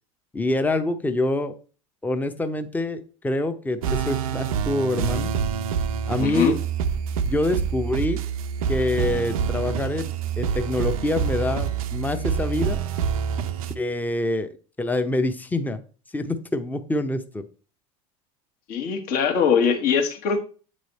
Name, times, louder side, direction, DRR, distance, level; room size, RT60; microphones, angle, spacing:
voice 1, 0.3-1.5 2.0-5.3 6.1-6.6 7.3-8.2 8.7-12.8 13.8-15.8 16.1-17.5, left 2 dB, 10° left, 9 dB, 0.7 m, -26 dB
sound 1, 3.8-13.8, right 7 dB, 75° right, 0.5 m, -26 dB
voice 2, 6.2-6.6 18.7-20.4, left 7 dB, 55° left, 5 dB, 1.2 m, -22 dB
8.0 x 3.2 x 4.0 m, 0.39 s
hypercardioid pair, 85°, 18 cm